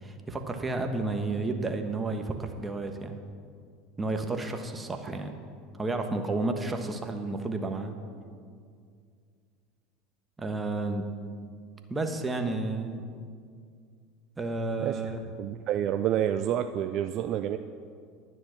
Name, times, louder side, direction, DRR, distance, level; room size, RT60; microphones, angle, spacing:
voice 1, 0.0-3.2 4.0-5.3 5.8-7.9 10.4-11.0 11.9-13.0 14.4-15.3, right 2 dB, 20° right, 5 dB, 1.3 m, -31 dB
voice 2, 15.4-17.6, right 10 dB, 50° right, 9 dB, 0.4 m, -28 dB
10.5 x 9.8 x 5.9 m, 2.2 s
hypercardioid pair, 80°, 0 cm